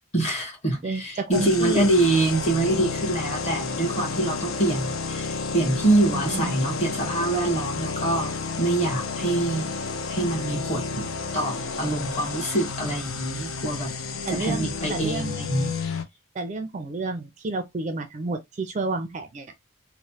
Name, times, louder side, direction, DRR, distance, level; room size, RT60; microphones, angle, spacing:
voice 1, 0.1-9.7 10.1-13.9 14.3-15.7, right 2 dB, 30° left, 1.1 m, -25 dB
voice 2, 0.8-1.9 6.1-6.6 14.2-15.4 16.3-19.5, right 3 dB, 35° right, 0.4 m, -30 dB
sound 1, 1.3-16.0, left 4 dB, 80° left, 0.5 m, -31 dB
3.1 x 2.0 x 2.7 m
head